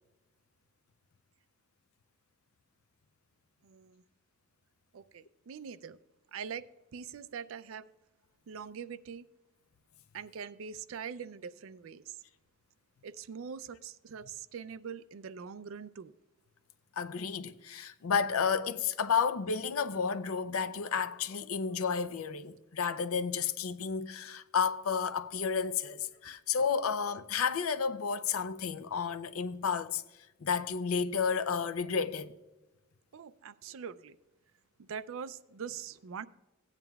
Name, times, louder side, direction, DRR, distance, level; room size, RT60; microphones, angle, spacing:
voice 1, 3.6-4.0 4.9-6.0 6.3-6.6 6.9-7.8 8.5-9.2 10.1-12.1 13.0-16.1 28.7-28.8 33.1-34.2 34.8-36.3, right 7 dB, 65° right, 0.4 m, -43 dB
voice 2, 17.0-30.0 30.4-32.3, left 6 dB, 85° left, 0.5 m, -31 dB
16.5 x 9.0 x 2.3 m
head